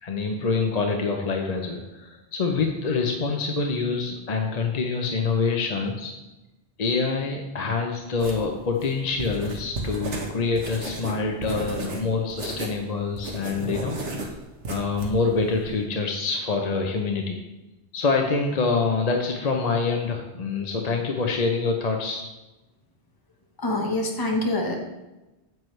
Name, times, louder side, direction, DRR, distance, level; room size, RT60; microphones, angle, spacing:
voice 1, 0.0-6.1 6.8-14.3 14.7-17.4 17.9-22.3, left 4 dB, 40° left, 2 dB, 0.7 m, -26 dB
sound 1, 8.2-12.8 13.1-15.8, right 2 dB, 90° right, 1.5 m, -33 dB
voice 2, 23.6-24.8, left 1 dB, 20° left, 1 dB, 1.1 m, -25 dB
9.1 x 7.7 x 3.2 m, 1.0 s
omnidirectional pair, 1.1 m